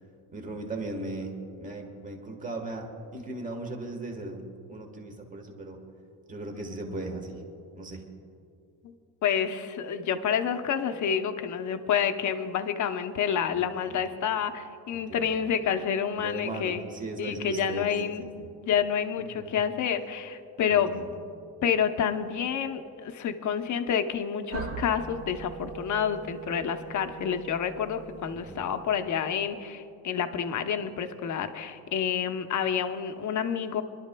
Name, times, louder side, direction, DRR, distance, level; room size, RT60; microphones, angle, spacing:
voice 1, 0.3-5.8 6.3-7.4 7.7-8.0 13.5-14.1 14.9-15.5 16.2-18.5 19.2-19.6 20.7-21.2 28.3-28.7, right 2 dB, 20° right, 3 dB, 1.3 m, -38 dB
voice 2, 9.2-16.9 17.2-18.2 18.6-20.9 21.6-33.8, left 8 dB, 40° left, 7 dB, 0.8 m, -28 dB
sound 1, 24.5-29.2, right 4 dB, 45° right, 1.6 m, -41 dB
27.0 x 11.5 x 2.2 m, 2.5 s
cardioid pair, 135°, 44 cm